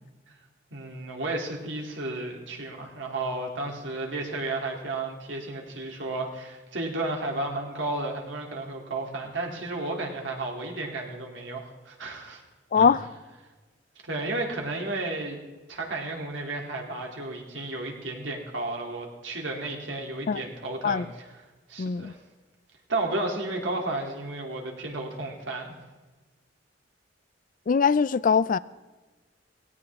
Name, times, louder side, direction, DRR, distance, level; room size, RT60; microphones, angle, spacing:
voice 1, 0.7-12.4 12.7-12.9 14.0-15.4 15.7-21.0 21.7-22.2 22.9-25.8, right 2 dB, 80° right, 3.1 m, -33 dB
voice 2, 12.7-13.1 20.3-20.4 20.8-21.1 21.8-22.1 27.7-28.6, left 6 dB, 45° left, 0.4 m, -22 dB
17.5 x 16.5 x 3.6 m
head